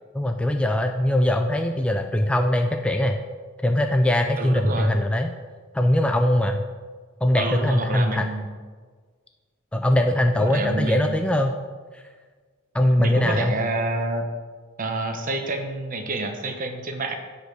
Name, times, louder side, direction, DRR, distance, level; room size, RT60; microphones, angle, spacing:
voice 1, 0.1-3.2 3.6-5.3 5.7-6.6 7.2-8.3 9.7-11.5 11.9-12.0 12.7-13.5, left 1 dB, 5° left, 4 dB, 0.3 m, -21 dB
voice 2, 4.4-4.9 7.3-8.5 10.4-11.2 13.0-14.3 14.8-17.2, right 2 dB, 40° right, 5 dB, 0.9 m, -28 dB
6.2 x 5.1 x 6.6 m, 1.5 s
head